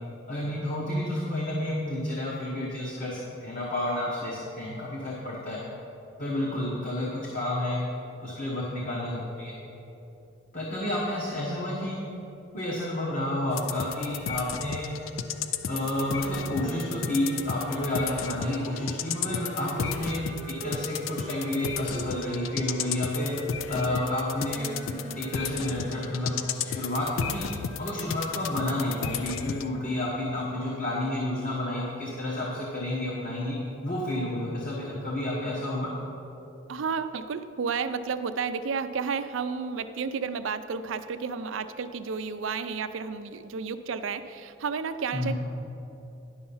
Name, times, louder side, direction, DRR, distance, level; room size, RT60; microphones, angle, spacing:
voice 1, 0.3-5.6 6.2-7.9 8.2-9.5 10.5-12.0 12.5-14.9 15.7-20.3 20.6-23.3 23.7-27.5 27.8-33.6 33.8-35.9 45.1-45.3, left 1 dB, 45° left, -5 dB, 1.2 m, -30 dB
sound 1, 13.5-29.7, left 7 dB, 85° left, 0.4 m, -34 dB
sound 2, 15.9-26.2, right 2 dB, 40° right, 0.7 m, -41 dB
voice 2, 36.7-45.3, right 5 dB, 80° right, 11 dB, 0.4 m, -32 dB
10.5 x 5.6 x 5.6 m, 3.0 s
head